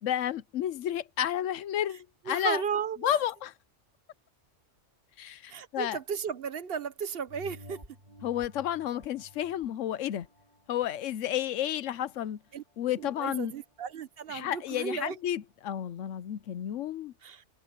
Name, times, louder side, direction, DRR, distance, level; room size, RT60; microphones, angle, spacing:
voice 1, 0.0-2.6 3.0-3.5 5.2-6.0 8.2-10.3 10.7-12.4 12.8-13.5 14.3-17.1, left 11 dB, 90° left, 1.0 m, -31 dB
voice 2, 2.2-3.2 5.5-7.8 12.5-12.6 13.0-15.2 17.2-17.4, right 7 dB, 55° right, 1.0 m, -34 dB
sound 1, 7.3-12.2 12.7-12.8, equal, 40° right, 3.5 m, -52 dB
omnidirectional pair, 1.3 m